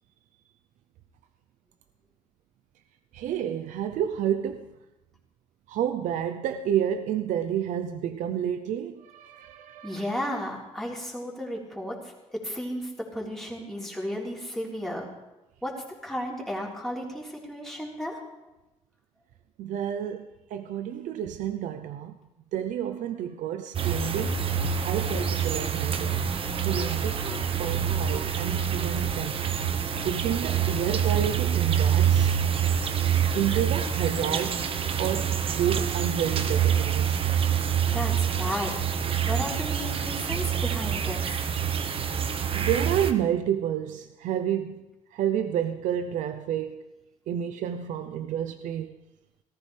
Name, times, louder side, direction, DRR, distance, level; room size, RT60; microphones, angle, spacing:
voice 1, 3.1-4.7 5.7-10.2 19.6-22.1 22.5-24.4 24.8-26.2 26.6-27.3 27.6-29.4 30.0-32.3 33.3-34.6 35.0-37.2 42.5-44.8 45.1-46.8 47.3-48.9, right 9 dB, 80° right, 8 dB, 0.7 m, -30 dB
voice 2, 9.8-12.0 12.3-15.1 15.6-18.2 37.9-38.8 39.3-41.5, equal, 5° left, -3 dB, 3.6 m, -34 dB
sound 1, 23.7-43.1, right 8 dB, 45° right, 1.1 m, -26 dB
18.5 x 14.0 x 3.4 m, 0.99 s
cardioid pair, 110°, 13 cm